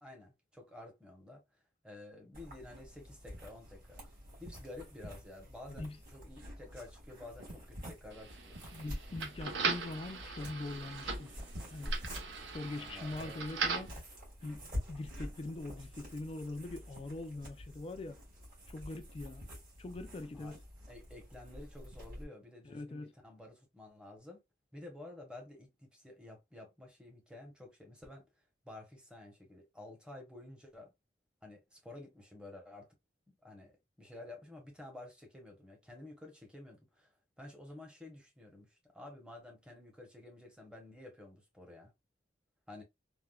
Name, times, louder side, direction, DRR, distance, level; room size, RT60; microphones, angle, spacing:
voice 1, 0.0-1.4 1.8-4.1 4.4-8.6 12.6-13.4 20.3-20.5 20.9-24.4 24.7-28.2 28.6-30.9 31.4-32.9 33.3-37.1 37.4-41.9 42.7-42.8, left 2 dB, 5° right, 0.8 m, -51 dB
sound 1, 2.3-22.3, equal, 45° right, 1.7 m, -47 dB
sound 2, 8.1-14.0, right 4 dB, 70° right, 0.7 m, -39 dB
voice 2, 8.7-11.3 11.7-11.9 12.4-14.0 14.4-14.6 14.9-18.2 18.7-19.5 19.8-20.6 22.6-23.1, left 2 dB, 30° left, 0.3 m, -42 dB
3.5 x 2.1 x 2.2 m
head